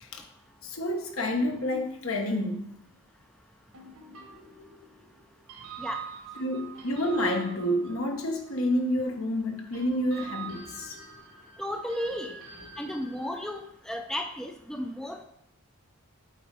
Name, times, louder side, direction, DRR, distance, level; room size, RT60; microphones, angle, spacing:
voice 1, 0.6-2.7 6.4-11.0, left 1 dB, 70° left, 4 dB, 1.1 m, -29 dB
sound 1, 1.2-2.9 3.7-9.1 9.7-13.7, right 5 dB, 75° right, 1.3 m, -45 dB
voice 2, 11.6-12.3 12.8-15.3, equal, 5° left, 4 dB, 0.4 m, -34 dB
8.7 x 3.9 x 4.7 m, 0.76 s
head